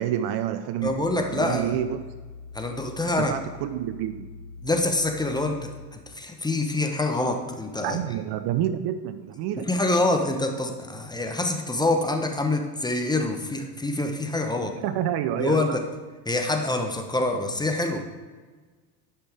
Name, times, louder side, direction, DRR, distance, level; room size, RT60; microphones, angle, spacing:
voice 1, 0.0-2.0 3.2-4.3 7.8-9.7 14.8-15.8, right 11 dB, 50° right, 11 dB, 0.6 m, -28 dB
sound 1, 0.8-5.9, left 4 dB, 65° left, 1.5 m, -43 dB
voice 2, 0.8-1.8 2.5-3.3 4.6-5.7 6.1-8.0 9.6-14.8 15.4-15.8 16.3-18.1, left 2 dB, 10° left, 4 dB, 1.0 m, -26 dB
10.5 x 5.6 x 3.5 m, 1.4 s
hypercardioid pair, 80°, 49 cm